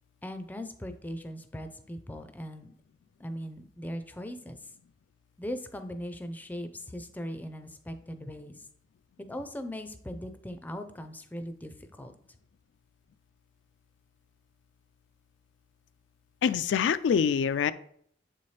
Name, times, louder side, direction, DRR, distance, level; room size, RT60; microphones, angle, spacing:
voice 1, 0.2-2.7 3.2-4.6 5.4-8.6 9.2-12.1, equal, 10° left, 8 dB, 0.5 m, -39 dB
voice 2, 16.4-17.7, left 7 dB, 90° left, 13 dB, 0.3 m, -25 dB
7.3 x 4.2 x 3.2 m, 0.64 s
head